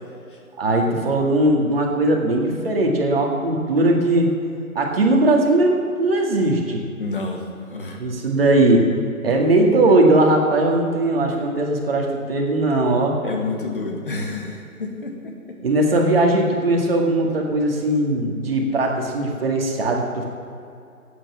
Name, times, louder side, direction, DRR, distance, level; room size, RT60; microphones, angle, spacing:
voice 1, 0.6-4.3 4.8-6.8 8.0-8.9 9.2-13.2 15.6-20.3, right 2 dB, 40° right, 0 dB, 2.0 m, -19 dB
voice 2, 7.0-8.0 13.2-15.6, left 3 dB, 35° left, 2 dB, 1.5 m, -29 dB
12.5 x 8.6 x 7.1 m, 2.6 s
hypercardioid pair, 170°, 44 cm